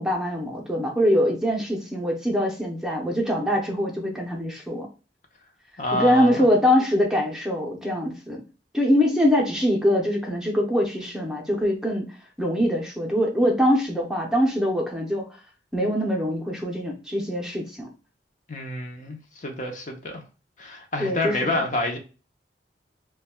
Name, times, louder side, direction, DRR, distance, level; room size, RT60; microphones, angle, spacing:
voice 1, 0.0-4.9 5.9-8.4 8.7-12.1 12.4-15.2 15.7-17.9 21.0-21.6, equal, 5° right, 0.7 m, -23 dB
voice 2, 5.8-6.5 18.5-20.2 20.6-22.0, left 2 dB, 45° left, 0.7 m, -28 dB
2.8 x 2.3 x 4.1 m
head